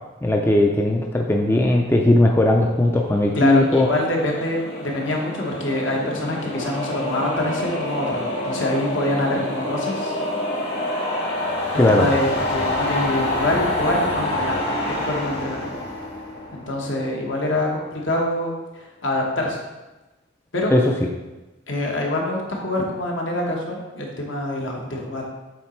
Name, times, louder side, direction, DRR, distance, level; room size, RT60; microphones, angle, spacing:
voice 1, 0.2-3.9 11.8-12.1 20.7-21.1, left 1 dB, 10° left, 1 dB, 0.4 m, -18 dB
sound 1, 2.9-17.2, left 1 dB, 55° left, 1.7 m, -27 dB
voice 2, 3.3-10.2 11.7-15.6 16.5-19.6 20.5-20.7 21.7-25.2, left 1 dB, 70° left, -1 dB, 1.3 m, -25 dB
7.5 x 4.0 x 4.4 m, 1.1 s
head